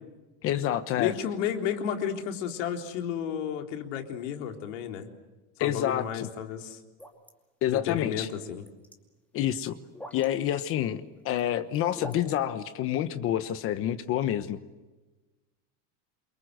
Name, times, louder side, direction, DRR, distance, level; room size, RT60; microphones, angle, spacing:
voice 1, 0.4-1.1 5.6-6.3 7.6-8.3 9.3-9.8 10.1-14.6, left 11 dB, 35° left, 12 dB, 1.1 m, -28 dB
voice 2, 1.0-5.1 5.6-6.8 7.7-8.6, left 9 dB, 85° left, 4 dB, 3.8 m, -32 dB
sound 1, 7.0-7.3 8.5-8.9 9.9-10.3 11.1-11.4 11.7-12.2, equal, 5° left, 2.5 m, -42 dB
28.5 x 24.0 x 7.9 m, 1.2 s
cardioid pair, 165°, 36 cm